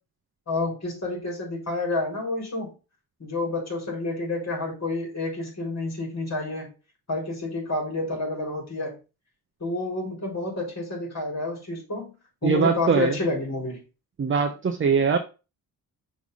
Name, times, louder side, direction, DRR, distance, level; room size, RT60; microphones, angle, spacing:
voice 1, 0.5-2.7 3.2-6.7 7.1-8.9 9.6-12.1 12.4-13.8, left 2 dB, 45° left, -1 dB, 4.2 m, -29 dB
voice 2, 12.4-13.2 14.2-15.2, right 5 dB, 35° right, 5 dB, 0.8 m, -22 dB
6.2 x 3.5 x 5.4 m, 0.31 s
cardioid pair, 70°, 37 cm